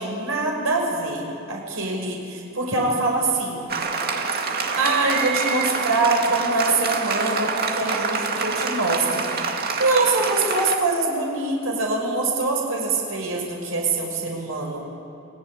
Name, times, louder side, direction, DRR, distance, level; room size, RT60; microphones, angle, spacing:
voice 1, 0.0-3.6 4.8-9.4 9.8-14.8, right 3 dB, 85° right, -1 dB, 5.8 m, -24 dB
Applause, 3.7-10.8, right 4 dB, 50° right, 2.1 m, -26 dB
28.5 x 18.0 x 9.9 m, 2.8 s
head